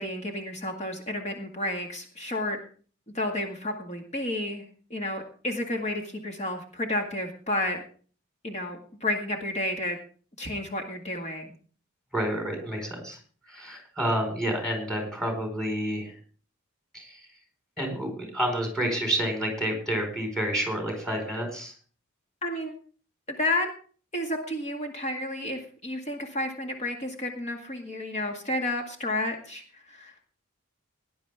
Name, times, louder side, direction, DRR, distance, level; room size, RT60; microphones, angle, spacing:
voice 1, 0.0-2.6 3.1-4.7 4.9-7.8 8.4-10.0 10.4-11.6 22.4-22.7 23.4-23.7 24.1-30.2, left 1 dB, 35° left, 3 dB, 2.0 m, -31 dB
voice 2, 12.1-13.2 13.5-16.1 16.9-17.2 17.8-21.7, right 1 dB, 5° left, 3 dB, 4.8 m, -29 dB
18.5 x 10.5 x 3.5 m, 0.41 s
head